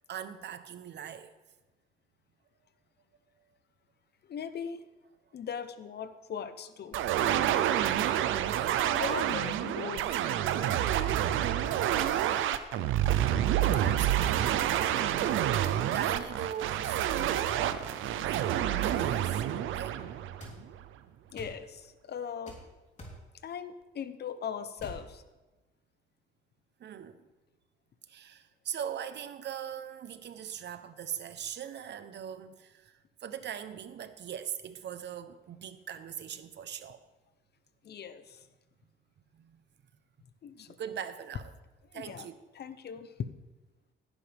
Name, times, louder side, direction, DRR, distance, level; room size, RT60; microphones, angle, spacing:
voice 1, 0.1-1.3 8.1-8.2 12.1-12.6 13.8-14.9 15.9-19.4 19.7-20.0 26.8-27.2 28.1-37.0 39.3-39.6 40.8-41.5 41.9-42.4, right 9 dB, 60° right, 0.9 m, -41 dB
voice 2, 4.2-4.8 5.3-7.0 8.9-10.2 21.3-22.6 23.4-25.2 37.8-38.4 40.4-40.8 41.9-42.3 42.5-43.1, left 7 dB, 55° left, 0.9 m, -39 dB
sound 1, 6.9-20.8, right 11 dB, 85° right, 0.7 m, -28 dB
sound 2, 20.4-20.6 21.4-21.6 22.5-22.6 23.0-23.2 24.8-25.0, left 1 dB, 35° left, 3.5 m, -44 dB
16.5 x 10.0 x 3.5 m
cardioid pair, 90°, 20 cm